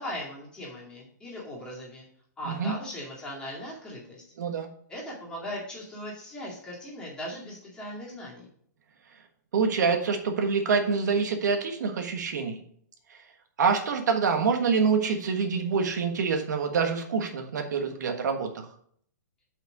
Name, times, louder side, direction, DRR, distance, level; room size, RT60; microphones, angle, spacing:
voice 1, 0.0-2.0 2.4-4.2 4.9-8.5, equal, 10° left, -5 dB, 2.3 m, -39 dB
voice 2, 4.4-4.7 9.5-12.6 13.6-18.7, right 5 dB, 70° right, 5 dB, 1.3 m, -26 dB
6.0 x 5.6 x 5.1 m, 0.62 s
hypercardioid pair, 165°, 10 cm